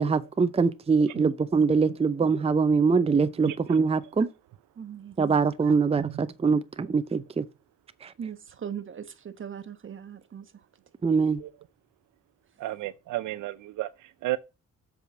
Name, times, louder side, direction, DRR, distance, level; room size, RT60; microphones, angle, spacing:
voice 1, 0.0-4.3 5.2-7.5 8.0-8.1 11.0-11.4, right 5 dB, 20° right, 0.6 m, -23 dB
voice 2, 4.8-5.2 8.2-10.5, right 8 dB, 40° right, 1.3 m, -39 dB
voice 3, 12.6-13.9 14.2-14.4, right 17 dB, 80° right, 0.6 m, -31 dB
7.5 x 5.0 x 6.7 m
cardioid pair, 90°, 30 cm